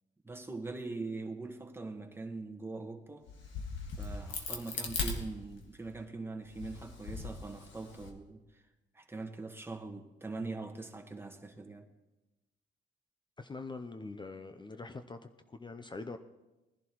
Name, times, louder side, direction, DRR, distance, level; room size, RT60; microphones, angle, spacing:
voice 1, 0.2-3.3 4.0-8.6 8.9-11.9, right 3 dB, 10° right, 3 dB, 1.4 m, -42 dB
Crack, 3.3-5.9 6.4-8.1, left 4 dB, 70° left, 1.7 m, -39 dB
voice 2, 13.4-15.2 15.5-16.2, left 3 dB, 25° left, 8 dB, 0.6 m, -43 dB
20.0 x 11.0 x 3.0 m, 1.1 s
cardioid pair, 90°, 20 cm